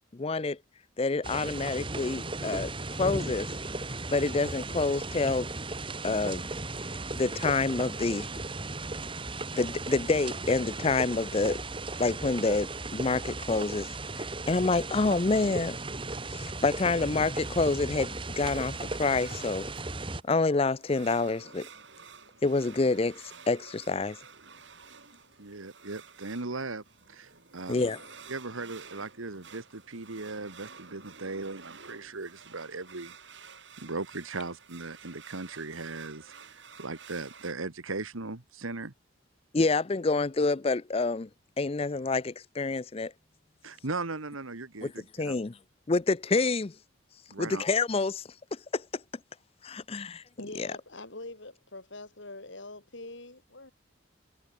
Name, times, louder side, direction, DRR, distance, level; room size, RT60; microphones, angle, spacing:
voice 1, 0.1-0.6 1.0-3.5 4.1-5.5 6.0-6.4 7.2-8.3 9.5-11.6 12.0-15.8 16.3-19.7 20.2-21.7 22.4-24.2 27.7-28.0 39.5-41.3 41.6-43.1 44.8-44.9 45.2-45.5 45.9-46.7 47.4-48.2 48.5-48.8 49.6-50.2 50.6-50.7, left 3 dB, 30° left, 0.5 m, -28 dB
sound 1, 1.2-20.2, right 2 dB, 25° right, 2.2 m, -36 dB
sound 2, 18.1-37.5, right 6 dB, 60° right, 6.6 m, -52 dB
voice 2, 25.4-26.8 27.1-27.9 28.3-33.1 33.8-38.9 43.6-45.4 47.3-47.6, right 3 dB, 90° right, 1.8 m, -38 dB
voice 3, 50.4-53.7, left 2 dB, 65° left, 3.5 m, -44 dB
head